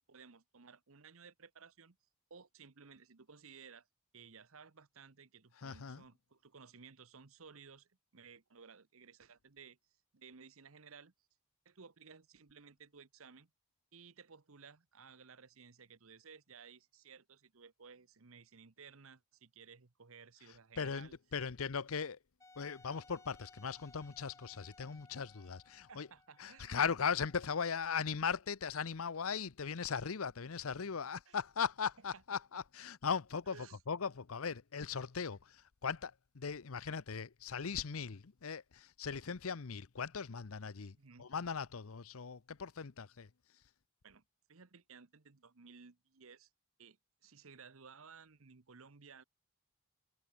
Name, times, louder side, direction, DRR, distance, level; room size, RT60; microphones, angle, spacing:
voice 1, 0.1-2.0 2.3-3.9 4.1-9.8 10.1-11.1 11.6-13.5 13.9-21.2 25.9-26.8 31.3-31.4 32.1-32.4 33.5-33.8 41.0-41.3 44.0-44.2 44.5-46.5 46.8-49.2, right 5 dB, 75° right, 1.0 m, -57 dB
voice 2, 5.6-6.0 20.8-22.2 22.6-26.1 26.4-43.3, left 6 dB, 75° left, 0.7 m, -39 dB
Wind instrument woodwind instrument, 22.4-28.0, left 3 dB, 15° left, 0.7 m, -63 dB
head